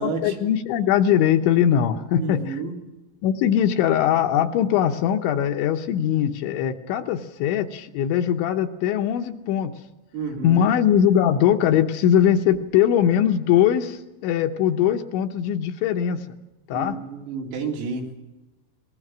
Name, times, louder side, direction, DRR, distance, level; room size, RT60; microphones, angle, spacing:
voice 1, 0.0-2.6 3.2-9.7 10.4-16.3 16.7-17.0, left 9 dB, 75° left, 5 dB, 3.0 m, -21 dB
voice 2, 2.2-2.7 10.1-10.6 16.7-18.1, right 5 dB, 85° right, -1 dB, 6.1 m, -30 dB
25.5 x 20.5 x 6.2 m, 1.0 s
omnidirectional pair, 5.9 m